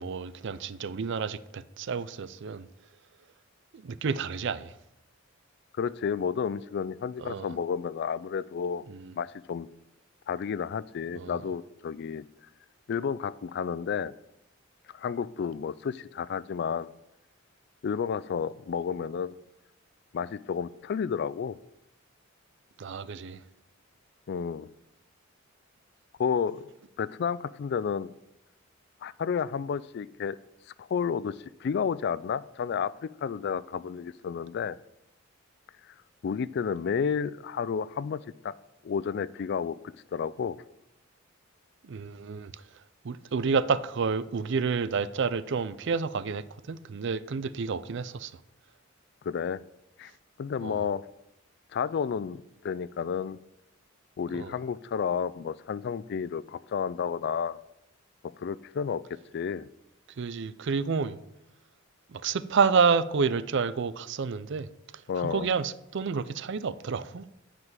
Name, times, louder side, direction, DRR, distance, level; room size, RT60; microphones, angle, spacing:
voice 1, 0.0-2.7 3.7-4.7 7.2-7.5 8.9-9.1 11.1-11.4 22.8-23.4 41.8-42.5 43.0-48.3 50.6-50.8 54.3-54.5 60.2-61.2 62.1-64.7 65.2-67.2, right 5 dB, 60° right, 0.5 m, -29 dB
voice 2, 5.8-8.8 9.2-9.7 10.3-12.2 12.9-14.1 14.9-16.9 17.8-19.3 20.1-21.6 24.3-24.7 26.2-26.7 27.0-28.1 29.0-30.4 30.8-34.8 36.2-38.5 38.8-39.8 40.1-40.6 49.2-49.6 50.0-50.1 50.4-51.0 51.7-53.4 54.2-57.6 58.4-59.0 59.3-59.7 65.1-65.5, left 6 dB, 55° left, 0.3 m, -31 dB
9.6 x 5.1 x 7.4 m
head